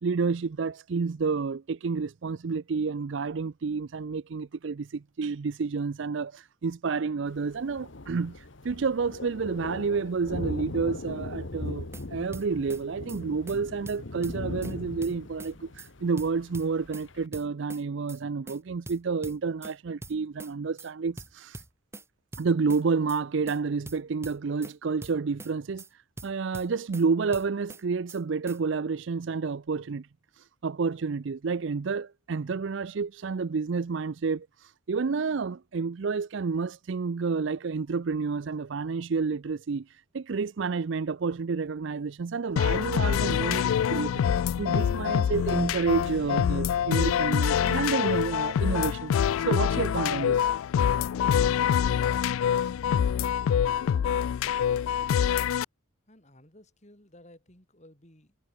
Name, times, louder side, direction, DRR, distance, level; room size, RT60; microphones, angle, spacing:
voice 1, 0.0-8.4 8.6-15.7 16.0-21.6 22.4-25.8 26.2-30.1 30.6-34.5 34.9-39.9 40.1-44.2 44.6-49.1 49.4-50.5, right 5 dB, 60° right, 0.5 m, -29 dB
Thunder, 7.3-17.3, left 2 dB, 60° left, 1.3 m, -39 dB
sound 1, 11.7-12.0 12.3-12.8 13.1-13.2 13.5-13.6 13.9-14.7 15.0-15.5 15.8-15.9 16.2-17.1 17.3-17.8 18.1-18.2 18.5-18.6 18.9-19.7 20.0-20.5 20.8-20.9 21.2-22.0 22.3-22.8 23.1-23.2 23.5-23.6 23.9-24.7 25.0-25.5 25.8-25.9 26.2-27.0 27.3-27.8 28.1-28.2 28.5-28.6, right 2 dB, 10° right, 1.7 m, -43 dB
sound 2, 42.6-55.6, left 8 dB, 75° left, 0.3 m, -25 dB
voice 2, 56.1-58.4, left 1 dB, 35° left, 5.2 m, -56 dB
head